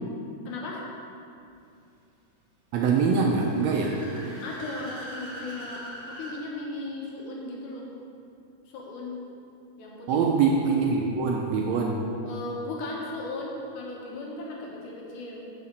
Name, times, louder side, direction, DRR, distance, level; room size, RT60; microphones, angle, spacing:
voice 1, 0.5-0.8 4.4-5.8 6.2-7.9 8.7-9.2 9.8-10.2 12.2-15.4, left 2 dB, 75° left, -2 dB, 2.7 m, -36 dB
voice 2, 2.7-3.9 10.1-12.0, right 5 dB, 75° right, 0 dB, 1.7 m, -23 dB
Car / Accelerating revving vroom, 3.2-6.4, equal, 35° right, 2.1 m, -42 dB
6.9 x 5.8 x 6.7 m, 2.6 s
omnidirectional pair, 3.6 m